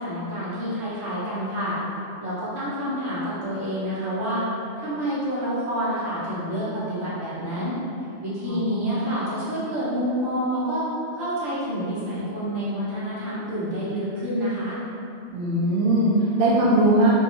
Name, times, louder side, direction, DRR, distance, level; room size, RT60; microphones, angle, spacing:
voice 1, 0.0-1.8 2.2-4.5 4.8-7.8 8.2-10.8 11.1-14.8, equal, 75° right, -10 dB, 1.2 m, -28 dB
voice 2, 8.5-8.9 15.3-17.1, right 1 dB, 55° right, -8 dB, 0.7 m, -20 dB
2.7 x 2.3 x 2.7 m, 2.7 s
omnidirectional pair, 1.3 m